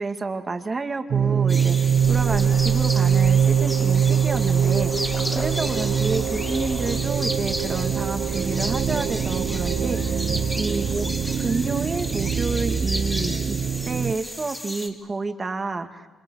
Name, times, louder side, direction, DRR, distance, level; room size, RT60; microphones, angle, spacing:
voice 1, 0.0-10.2 10.5-11.1 11.4-13.6 13.9-16.1, right 3 dB, 30° right, 6 dB, 2.4 m, -29 dB
sound 1, 1.1-14.1, right 8 dB, 60° right, 1.3 m, -23 dB
sound 2, 1.5-14.9, equal, 10° left, 3.6 m, -34 dB
sound 3, 1.9-7.0, left 3 dB, 40° left, 6.1 m, -36 dB
29.5 x 26.5 x 6.5 m, 1.2 s
cardioid pair, 90°, 0 cm